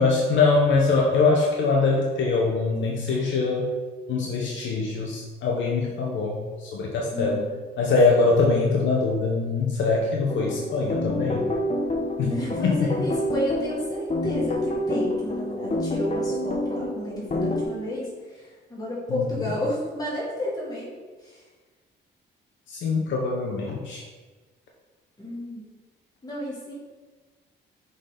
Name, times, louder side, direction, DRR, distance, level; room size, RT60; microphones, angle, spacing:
voice 1, 0.0-3.7 4.1-7.4 7.8-11.5 12.2-12.3 12.6-13.0 19.1-19.5 22.7-24.0, left 3 dB, 70° left, -1 dB, 0.9 m, -23 dB
voice 2, 7.1-7.5 12.2-20.9 21.2-21.4 25.2-25.7 26.2-26.7, equal, 20° left, -6 dB, 2.2 m, -32 dB
sound 1, 10.3-17.6, left 1 dB, 35° left, 0.9 m, -28 dB
6.3 x 4.0 x 5.1 m, 1.4 s
cardioid pair, 90°, 20 cm